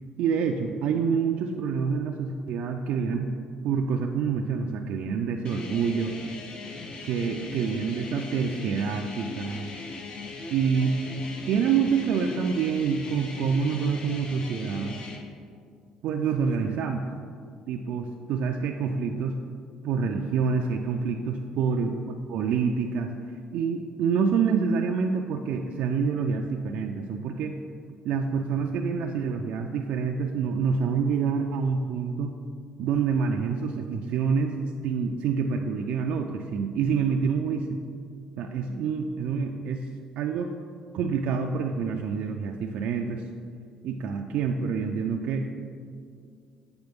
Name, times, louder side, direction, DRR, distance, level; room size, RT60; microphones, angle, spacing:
voice 1, 0.2-3.3 3.6-6.1 7.0-9.7 10.5-11.0 11.5-15.0 16.0-17.1 17.7-19.4 19.8-23.1 23.5-27.6 28.0-32.4 32.8-34.5 34.8-37.8 38.4-39.8 40.2-40.5 40.9-43.2 43.8-45.5, right 6 dB, 70° right, 3 dB, 0.3 m, -27 dB
sound 1, 5.4-15.2, left 3 dB, 45° left, 0.7 m, -39 dB
7.9 x 4.0 x 3.5 m, 2.2 s
cardioid pair, 105°, 2 cm